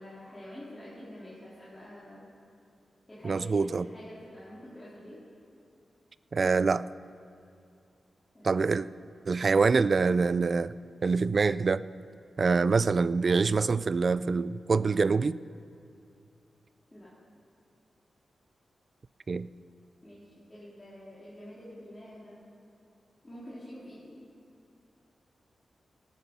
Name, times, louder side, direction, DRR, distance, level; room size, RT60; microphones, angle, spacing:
voice 1, 0.0-2.3 3.1-5.2 8.3-8.6 16.9-17.1 20.0-22.4 23.2-24.2, equal, 15° left, -10 dB, 3.8 m, -47 dB
voice 2, 3.2-3.9 6.3-6.9 8.4-8.9 9.3-10.8 11.0-11.8 12.4-15.4 19.3-19.5, right 4 dB, 45° right, 17 dB, 0.3 m, -25 dB
18.5 x 10.5 x 5.5 m, 2.6 s
wide cardioid pair, 105°, 0 cm